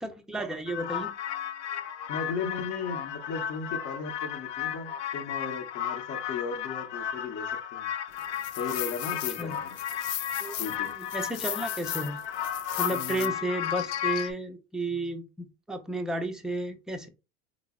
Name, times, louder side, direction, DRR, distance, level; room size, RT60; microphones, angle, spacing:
voice 1, 0.0-1.1 9.4-9.5 10.4-12.2 12.8-17.1, right 1 dB, ahead, 0.4 m, -33 dB
sound 1, 0.7-14.3, left 10 dB, 85° left, 0.6 m, -33 dB
voice 2, 2.1-7.9 8.6-9.8 10.6-11.0 12.9-13.3, left 5 dB, 50° left, 0.9 m, -36 dB
3.7 x 2.0 x 3.5 m
supercardioid pair, 115°, 34 cm